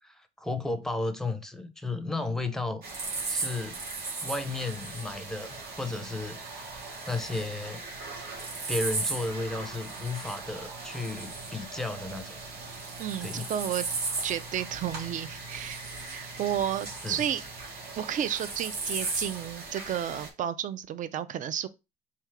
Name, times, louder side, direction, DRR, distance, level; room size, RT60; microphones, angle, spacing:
voice 1, 0.0-2.8 3.3-3.8 4.2-6.7 7.1-7.8 8.7-12.4 13.2-13.5 17.0-17.2, left 2 dB, 5° left, 0.6 m, -34 dB
sound 1, 2.8-20.3, right 3 dB, 70° right, 1.7 m, -37 dB
voice 2, 13.0-13.9 14.2-17.4 18.0-21.7, right 10 dB, 50° right, 0.5 m, -32 dB
3.5 x 2.8 x 4.6 m
cardioid pair, 110°, 17 cm